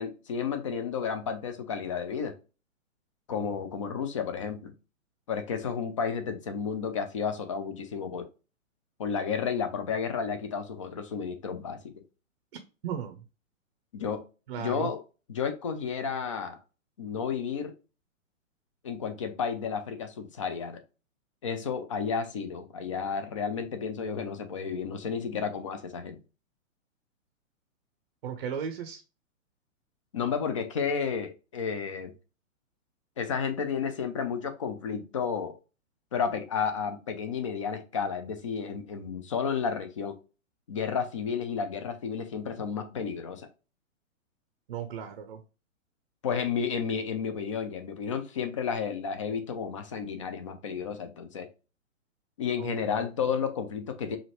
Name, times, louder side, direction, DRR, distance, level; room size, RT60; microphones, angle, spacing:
voice 1, 0.0-2.4 3.3-4.7 5.3-8.3 9.0-11.9 13.9-14.2 14.6-15.0 15.3-16.6 17.0-17.7 18.8-20.8 21.4-26.2 30.1-32.1 33.2-35.5 36.1-40.2 40.7-43.5 46.2-51.5 52.4-54.2, left 6 dB, 25° left, 7 dB, 0.4 m, -32 dB
voice 2, 12.8-13.2 14.5-14.9 28.2-29.0 44.7-45.4 52.6-52.7, right 8 dB, 40° right, 7 dB, 0.6 m, -35 dB
4.8 x 2.6 x 3.0 m, 0.32 s
figure-of-eight pair, 120°, 40 cm